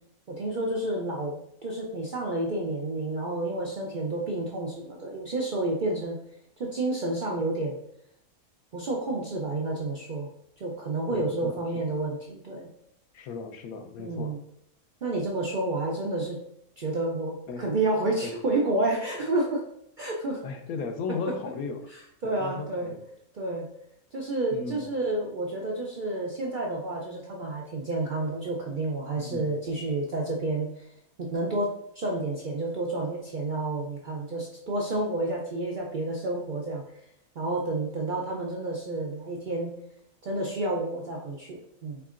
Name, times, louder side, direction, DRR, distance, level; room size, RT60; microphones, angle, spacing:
voice 1, 0.3-6.2 6.6-7.8 8.7-10.3 10.6-12.7 14.0-14.4 15.0-16.4 16.8-19.6 20.0-20.4 22.2-22.9 23.3-23.7 24.1-30.8 31.2-36.8 37.4-39.7 40.2-42.0, right 2 dB, 60° right, -2 dB, 0.5 m, -30 dB
voice 2, 11.1-11.8 13.1-14.4 17.5-17.7 18.2-18.3 20.4-21.9 22.2-23.0 24.5-24.9 29.2-29.5, left 5 dB, 75° left, 5 dB, 1.1 m, -36 dB
4.5 x 4.1 x 2.4 m, 0.74 s
omnidirectional pair, 1.5 m